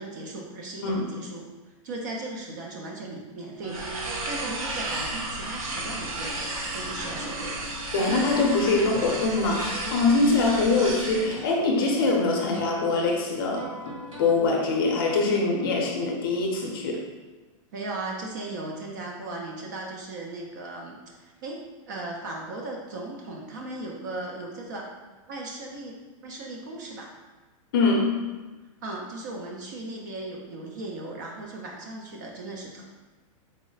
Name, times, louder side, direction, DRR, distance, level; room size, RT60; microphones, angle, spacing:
voice 1, 0.0-1.4 1.8-7.7 17.7-24.9 25.3-27.1 28.8-32.9, right 2 dB, 35° right, 0 dB, 0.4 m, -37 dB
sound 1, 3.6-14.5, right 2 dB, 65° right, 1.1 m, -41 dB
sound 2, 3.7-11.3, right 2 dB, 80° right, 0.8 m, -33 dB
voice 2, 7.9-17.0 27.7-28.1, left 3 dB, 40° left, 0 dB, 0.6 m, -23 dB
4.0 x 2.0 x 3.8 m, 1.2 s
supercardioid pair, 180°, 18 cm